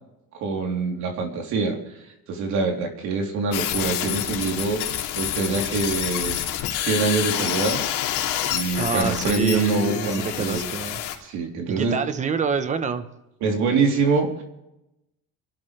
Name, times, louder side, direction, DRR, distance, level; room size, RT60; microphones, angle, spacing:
voice 1, 0.4-1.8 2.3-4.8 5.2-6.4 6.7-7.9 8.5-10.7 11.2-11.9 13.4-14.4, right 4 dB, 60° right, 2 dB, 3.5 m, -24 dB
sound 1, 3.5-11.2, left 12 dB, 90° left, 2.7 m, -28 dB
voice 2, 8.8-11.0 11.8-13.1, right 6 dB, 20° right, 10 dB, 1.0 m, -27 dB
28.0 x 12.5 x 3.3 m, 0.90 s
cardioid pair, 175°, 32 cm